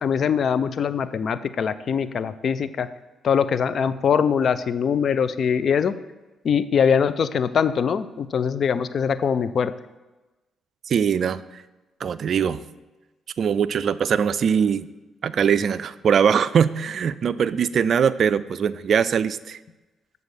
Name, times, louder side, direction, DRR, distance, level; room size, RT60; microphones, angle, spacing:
voice 1, 0.0-2.9 3.2-5.9 6.4-9.7, left 7 dB, 60° left, 14 dB, 0.4 m, -22 dB
voice 2, 10.9-11.6 12.0-12.6 13.4-14.9 15.2-19.6, right 7 dB, 60° right, 16 dB, 0.3 m, -21 dB
6.7 x 4.0 x 6.4 m, 1.1 s
hypercardioid pair, 50°, 0 cm